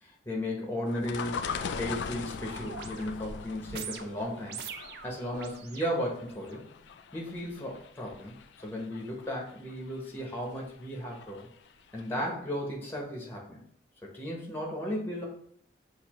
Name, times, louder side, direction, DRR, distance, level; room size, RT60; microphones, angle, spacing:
voice 1, 0.0-4.6 5.0-6.6 7.1-8.3 8.6-11.5 11.9-13.6 14.0-15.3, equal, 10° left, -2 dB, 0.9 m, -35 dB
sound 1, 0.9-11.7 12.0-12.1, left 6 dB, 85° left, 0.3 m, -41 dB
sound 2, 2.5-6.6 7.2-7.4, right 7 dB, 65° right, 0.4 m, -44 dB
6.3 x 2.6 x 3.0 m, 0.63 s
head